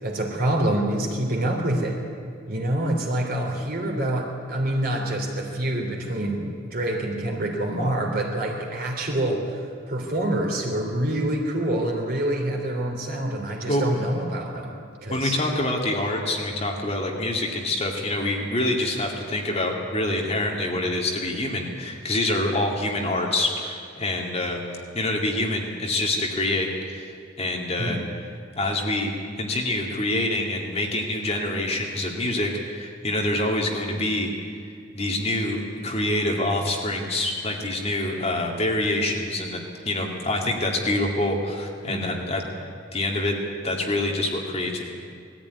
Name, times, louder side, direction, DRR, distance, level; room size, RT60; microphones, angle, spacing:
voice 1, 0.0-2.0 2.5-9.6 9.9-15.4 27.8-28.0 41.9-42.2, right 1 dB, 45° right, 1 dB, 3.2 m, -26 dB
voice 2, 15.1-24.6 24.9-27.1 27.4-28.0 28.6-29.1 29.4-34.6 34.9-39.6 39.8-42.4 42.9-43.3 43.6-44.8, left 1 dB, 30° left, 0 dB, 2.2 m, -26 dB
19.5 x 14.0 x 9.5 m, 2.2 s
head